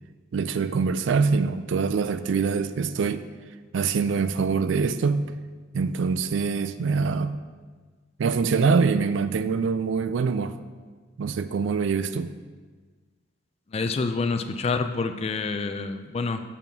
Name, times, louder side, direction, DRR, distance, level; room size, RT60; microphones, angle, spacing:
voice 1, 0.3-3.3 3.7-5.3 5.7-7.4 8.2-10.5 11.2-12.3, right 5 dB, 65° right, 12 dB, 0.3 m, -24 dB
voice 2, 13.7-16.4, left 4 dB, 30° left, 8 dB, 0.3 m, -27 dB
7.0 x 3.6 x 5.9 m, 1.4 s
head